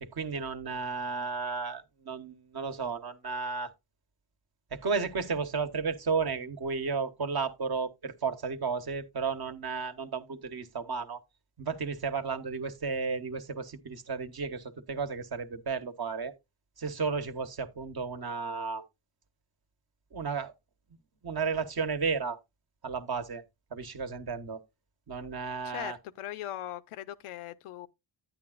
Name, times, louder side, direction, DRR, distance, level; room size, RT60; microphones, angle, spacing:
voice 1, 0.0-3.7 4.7-11.2 11.6-16.3 16.8-18.8 20.1-20.5 21.2-22.4 22.8-23.4 23.7-24.6 25.1-26.0, right 5 dB, 45° right, 1.2 m, -33 dB
voice 2, 25.6-27.9, left 13 dB, 80° left, 0.7 m, -39 dB
10.0 x 8.9 x 2.5 m
cardioid pair, 60°, 50 cm